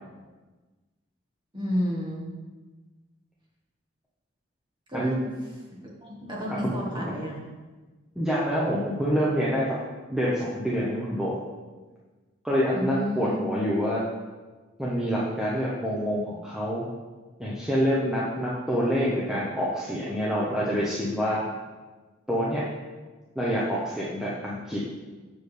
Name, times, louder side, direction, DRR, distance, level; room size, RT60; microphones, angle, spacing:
voice 1, 1.5-2.2 4.9-5.3 5.7-7.4 12.7-13.4, equal, 25° right, -3 dB, 1.5 m, -31 dB
voice 2, 6.5-7.0 8.2-9.7 10.1-11.4 12.4-14.0 14.8-16.8 17.4-21.4 22.3-22.7 23.3-24.8, equal, 5° right, -7 dB, 0.8 m, -27 dB
6.9 x 6.4 x 3.3 m, 1.3 s
head